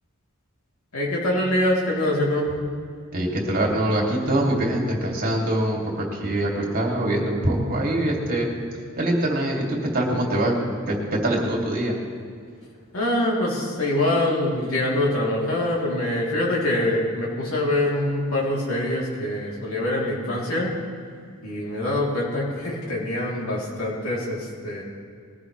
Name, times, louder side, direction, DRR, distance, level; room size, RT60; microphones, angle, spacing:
voice 1, 0.9-2.5 12.9-20.7 21.4-24.8, left 1 dB, 80° left, -4 dB, 3.4 m, -24 dB
voice 2, 3.1-8.5 9.0-9.6 9.9-10.6 10.9-12.0, right 1 dB, 45° right, -1 dB, 2.7 m, -23 dB
21.0 x 14.5 x 3.3 m, 2.2 s
head